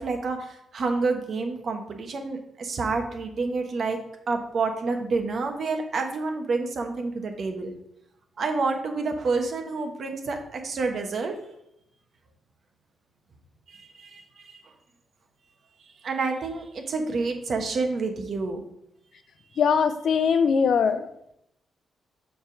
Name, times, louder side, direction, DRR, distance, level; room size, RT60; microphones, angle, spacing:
voice 1, 0.0-4.0 4.3-7.7 8.4-11.4 13.7-14.6 16.0-18.6 20.3-20.4, right 3 dB, 55° right, 4 dB, 1.1 m, -28 dB
voice 2, 19.6-21.1, left 6 dB, 65° left, 10 dB, 0.5 m, -21 dB
7.1 x 3.5 x 6.3 m, 0.80 s
cardioid pair, 100°, 0 cm